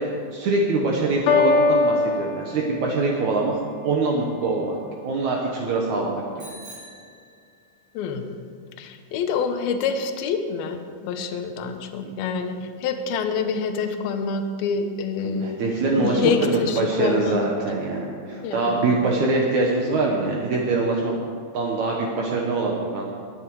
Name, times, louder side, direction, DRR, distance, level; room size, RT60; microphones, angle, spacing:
voice 1, 0.0-3.5 3.8-4.7 5.0-6.2 12.0-12.1 15.2-21.1 21.5-23.0, right 3 dB, 75° right, -1 dB, 1.7 m, -24 dB
Piano, 1.3-3.2, left 3 dB, 90° left, 3.6 m, -21 dB
Bicycle bell, 6.4-7.9, right 2 dB, 40° right, 5.0 m, -45 dB
voice 2, 7.9-8.4 8.8-15.6 16.0-17.4 18.4-19.0, left 5 dB, 75° left, 7 dB, 2.4 m, -26 dB
20.0 x 9.8 x 4.7 m, 2.2 s
omnidirectional pair, 5.2 m